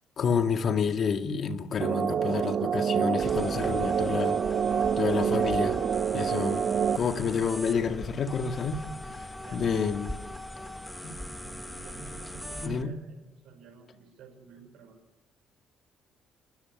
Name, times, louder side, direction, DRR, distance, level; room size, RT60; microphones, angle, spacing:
voice 1, 0.2-4.4 5.0-5.8 6.1-6.7 6.9-8.8 9.1-10.1 11.0-11.2 12.6-13.0, left 6 dB, 45° left, 2.0 m, -29 dB
sound 1, 1.8-7.0, right 8 dB, 45° right, 0.8 m, -27 dB
sound 2, 3.2-12.8, left 1 dB, 5° left, 1.5 m, -40 dB
voice 2, 9.4-9.9 11.4-15.0, right 5 dB, 70° right, 5.1 m, -48 dB
30.0 x 13.5 x 9.5 m
cardioid pair, 125°, 0 cm